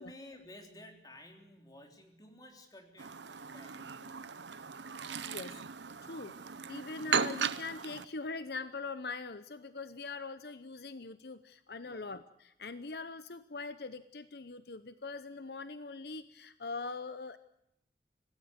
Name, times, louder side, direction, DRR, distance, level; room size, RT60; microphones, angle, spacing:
voice 1, 0.0-4.2 11.8-12.0, left 1 dB, 20° left, 4 dB, 3.6 m, -53 dB
Chirp tweet, 3.0-8.1, right 6 dB, 85° right, 1.0 m, -37 dB
voice 2, 5.2-5.6 6.0-17.4, left 3 dB, 65° left, 13 dB, 0.8 m, -42 dB
26.0 x 17.0 x 8.0 m, 0.78 s
head